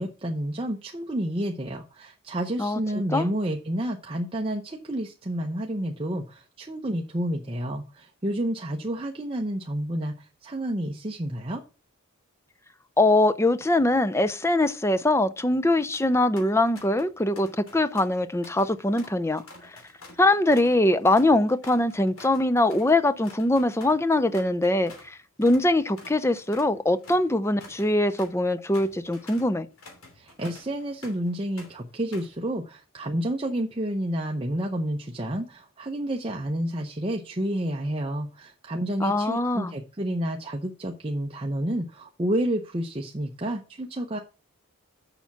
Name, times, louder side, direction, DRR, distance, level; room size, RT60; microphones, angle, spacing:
voice 1, 0.0-11.6 30.1-44.2, right 1 dB, 25° right, 0.7 m, -30 dB
voice 2, 13.0-19.4 20.2-29.7 39.0-39.7, left 1 dB, 10° left, 0.5 m, -22 dB
sound 1, 15.9-16.1 16.4-17.1 17.4-25.1 25.4-25.7 26.0-31.3 31.6-32.4, left 2 dB, 75° left, 2.9 m, -48 dB
6.9 x 5.8 x 7.0 m
head